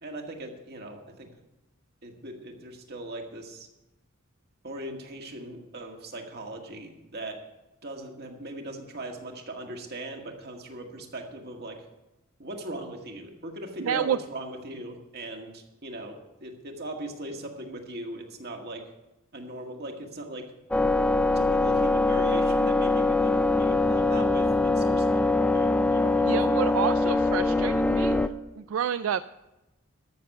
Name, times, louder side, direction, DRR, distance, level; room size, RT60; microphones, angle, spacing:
voice 1, 0.0-1.3 2.0-3.7 4.6-7.4 7.8-11.8 12.4-18.8 19.3-20.4 21.3-25.2 25.5-26.9, right 1 dB, 50° right, 2 dB, 1.9 m, -39 dB
voice 2, 13.8-14.2 26.2-28.2 28.6-29.3, right 8 dB, 70° right, 13 dB, 0.3 m, -29 dB
sound 1, 20.7-28.3, left 2 dB, 5° left, 0.4 m, -23 dB
13.0 x 6.9 x 7.7 m, 0.98 s
head